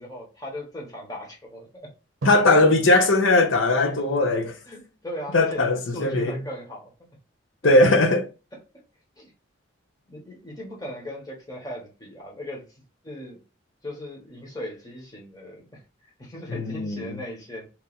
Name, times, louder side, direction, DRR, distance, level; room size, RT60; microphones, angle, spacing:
voice 1, 0.0-1.9 4.7-6.9 7.6-7.8 8.7-8.8 9.2-9.3 10.1-12.7 13.0-13.4 13.8-17.7, left 1 dB, 20° left, 1.1 m, -38 dB
voice 2, 2.2-4.6 5.3-6.4 7.6-8.3 16.5-17.2, left 2 dB, 75° left, 0.7 m, -19 dB
Drum, 4.9-5.1, right 2 dB, 80° right, 0.6 m, -38 dB
3.0 x 2.6 x 3.9 m
head